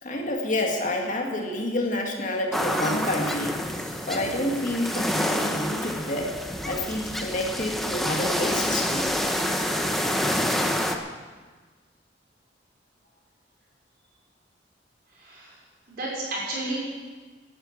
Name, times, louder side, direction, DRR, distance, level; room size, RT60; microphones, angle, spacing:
voice 1, 0.0-3.6 4.1-6.3 6.6-9.1, left 1 dB, 45° left, 1 dB, 2.1 m, -28 dB
sound 1, 2.5-11.0, equal, ahead, 1.1 m, -27 dB
voice 2, 15.2-15.5 15.9-16.8, right 2 dB, 55° right, -4 dB, 5.7 m, -32 dB
11.0 x 11.0 x 8.8 m, 1.4 s
head